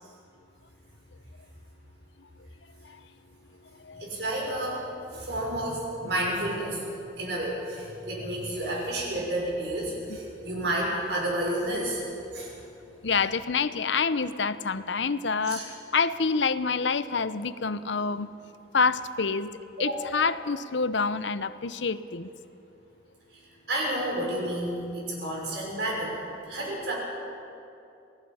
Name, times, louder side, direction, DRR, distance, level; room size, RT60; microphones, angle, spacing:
voice 1, 4.0-4.8 5.1-6.8 7.2-12.0 12.3-12.5 15.4-15.6 19.8-20.2 23.7-26.1 26.4-26.9, right 1 dB, 65° right, -3 dB, 5.9 m, -30 dB
voice 2, 13.0-18.3 18.7-19.5 19.8-22.3, left 5 dB, 80° left, 13 dB, 0.8 m, -27 dB
26.5 x 18.0 x 5.6 m, 2.7 s
head